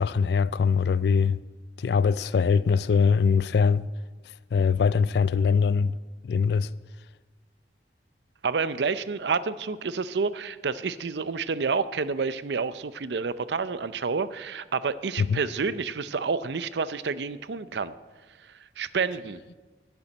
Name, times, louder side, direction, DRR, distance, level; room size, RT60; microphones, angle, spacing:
voice 1, 0.0-1.4 1.8-3.9 4.5-5.9 6.2-6.7 15.2-15.4, left 5 dB, 65° left, 0.3 m, -22 dB
voice 2, 8.4-17.9 18.5-19.6, right 5 dB, 75° right, 0.5 m, -29 dB
11.5 x 6.9 x 9.0 m
head